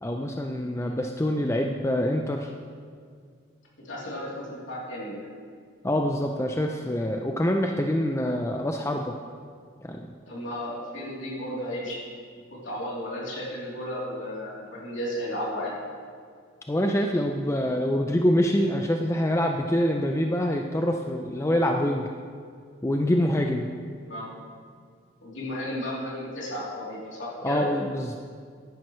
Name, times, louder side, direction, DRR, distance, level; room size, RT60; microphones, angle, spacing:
voice 1, 0.0-2.5 5.8-9.1 9.8-10.1 16.7-22.1 22.8-23.7 27.4-28.1, equal, 15° left, 3 dB, 0.4 m, -25 dB
voice 2, 3.8-5.3 10.3-12.0 12.5-15.8 24.0-24.3 25.2-27.6, equal, 65° left, -6 dB, 3.2 m, -34 dB
14.0 x 10.5 x 3.2 m, 2.1 s
head